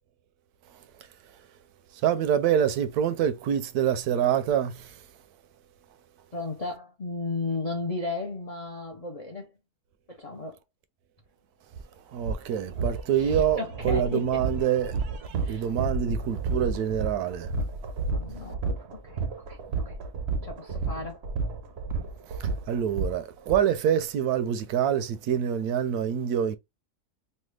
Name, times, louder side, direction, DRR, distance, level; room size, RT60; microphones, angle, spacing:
voice 1, 0.7-1.1 1.9-5.1 12.1-15.0 15.5-17.5 22.3-26.6, right 9 dB, 80° right, 1.0 m, -26 dB
voice 2, 6.3-9.5 10.1-10.6 13.2-14.4 15.4-15.6 18.1-19.2 19.5-19.6 19.8-20.0 20.4-21.2, left 3 dB, 55° left, 0.4 m, -34 dB
sound 1, 11.7-11.8 12.2-23.6, right 3 dB, 60° right, 0.7 m, -31 dB
3.2 x 2.2 x 3.1 m
omnidirectional pair, 1.6 m